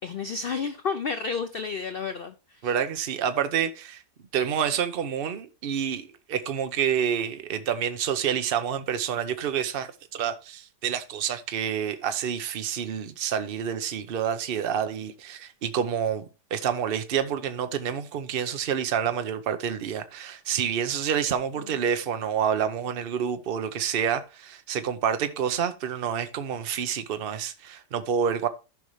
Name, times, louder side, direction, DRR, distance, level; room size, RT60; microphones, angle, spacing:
voice 1, 0.0-2.7 21.6-21.7, left 5 dB, 75° left, 0.5 m, -31 dB
voice 2, 2.6-4.0 4.3-16.2 16.5-28.5, right 8 dB, 45° right, 0.8 m, -28 dB
14.0 x 5.3 x 3.2 m
omnidirectional pair, 1.7 m